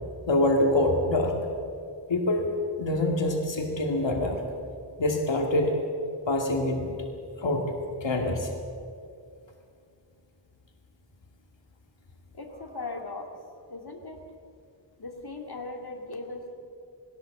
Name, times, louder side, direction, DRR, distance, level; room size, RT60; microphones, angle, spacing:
voice 1, 0.3-1.4 2.1-2.5 2.8-4.4 5.0-5.8 6.3-6.9 7.4-7.7 8.0-8.5, left 1 dB, 90° left, 2 dB, 2.2 m, -25 dB
voice 2, 12.3-13.3 13.7-14.3 15.0-16.5, left 2 dB, 60° left, 2 dB, 2.5 m, -38 dB
20.5 x 16.5 x 7.8 m, 2.4 s
wide cardioid pair, 60°, 43 cm